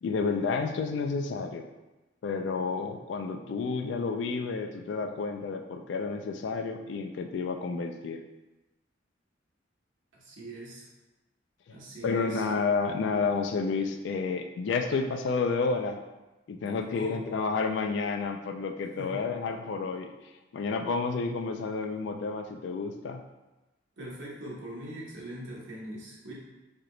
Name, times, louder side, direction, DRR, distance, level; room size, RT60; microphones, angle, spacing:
voice 1, 0.0-1.7 2.2-8.2 12.0-16.0 16.5-20.1 20.5-23.2, left 4 dB, 65° left, 5 dB, 0.3 m, -30 dB
voice 2, 10.1-10.9 11.7-12.4 16.9-17.1 19.0-19.2 24.0-26.3, right 1 dB, 80° right, -5 dB, 1.2 m, -41 dB
3.3 x 2.8 x 3.8 m, 1.1 s
head